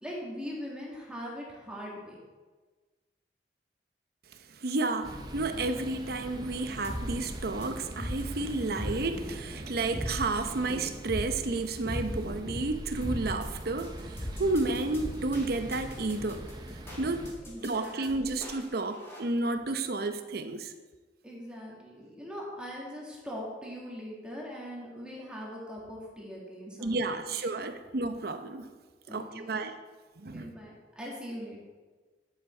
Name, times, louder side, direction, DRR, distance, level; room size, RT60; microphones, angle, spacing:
voice 1, 0.0-2.2 17.4-18.4 21.2-27.2 29.1-29.6 30.3-31.6, equal, 5° right, 2.0 m, -41 dB
voice 2, 4.5-16.5 17.0-17.3 17.6-20.7 26.8-28.7 29.1-29.7 30.2-30.5, right 2 dB, 60° right, 0.8 m, -31 dB
sound 1, 5.0-17.3, right 1 dB, 25° right, 0.8 m, -43 dB
sound 2, 6.8-19.2, equal, 15° left, 2.4 m, -38 dB
10.5 x 7.1 x 4.4 m
head